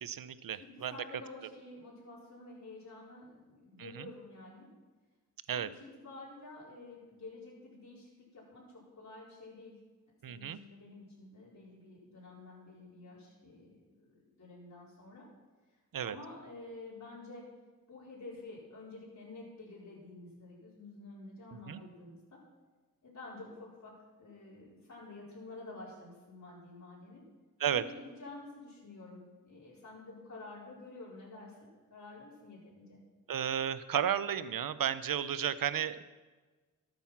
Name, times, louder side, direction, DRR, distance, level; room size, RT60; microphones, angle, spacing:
voice 1, 0.0-0.9 3.8-4.1 5.5-5.7 10.2-10.6 15.9-16.2 21.7-21.8 27.6-27.8 33.3-36.0, right 9 dB, 65° right, 15 dB, 0.7 m, -33 dB
voice 2, 0.6-4.7 5.5-9.8 10.3-15.3 15.7-17.5 17.9-22.4 23.0-27.2 27.6-33.0, left 2 dB, 50° left, -7 dB, 4.7 m, -50 dB
13.0 x 9.0 x 6.0 m, 1.3 s
cardioid pair, 55°, 37 cm